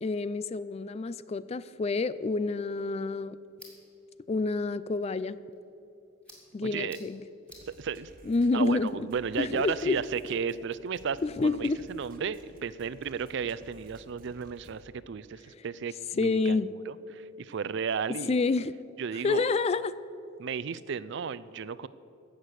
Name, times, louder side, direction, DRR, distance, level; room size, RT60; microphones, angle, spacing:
voice 1, 0.0-3.4 4.3-5.4 6.5-7.2 8.3-9.1 9.4-10.0 11.2-11.8 15.6-15.7 16.2-16.7 18.3-18.7 19.2-19.9, left 3 dB, 30° left, 16 dB, 0.3 m, -28 dB
sound 1, 2.6-10.5, equal, 5° left, 2.6 m, -59 dB
voice 2, 6.6-7.0 7.7-8.1 8.5-18.3 19.0-19.5 20.4-21.9, right 6 dB, 60° right, 17 dB, 0.4 m, -34 dB
sound 2, 7.5-14.9, right 1 dB, 45° right, 1.2 m, -55 dB
16.0 x 6.6 x 8.0 m, 2.7 s
head